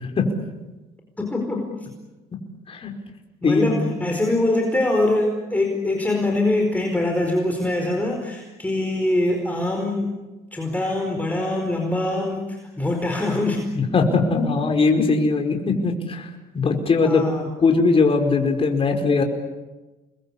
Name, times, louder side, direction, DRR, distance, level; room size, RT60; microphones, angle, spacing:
voice 1, 1.2-1.7 3.4-10.1 10.5-13.7 17.0-17.5, left 2 dB, 10° left, 1 dB, 4.7 m, -23 dB
voice 2, 3.4-3.8 13.8-16.3 16.5-17.2 17.6-19.2, left 4 dB, 35° left, 3 dB, 5.0 m, -20 dB
29.0 x 22.0 x 8.6 m, 1.2 s
cardioid pair, 110°, 17 cm